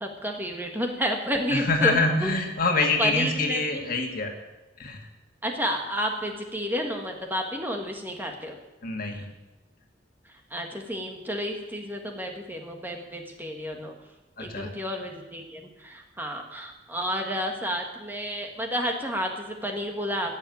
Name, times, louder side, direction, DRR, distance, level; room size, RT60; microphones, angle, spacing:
voice 1, 0.0-2.3 3.0-3.8 5.4-8.6 10.5-13.9 14.4-20.4, equal, 10° right, 2 dB, 1.6 m, -31 dB
voice 2, 1.5-4.3 4.8-5.1 8.8-9.3 14.4-14.7, left 3 dB, 50° left, 3 dB, 2.0 m, -25 dB
15.5 x 7.4 x 9.4 m, 1.1 s
head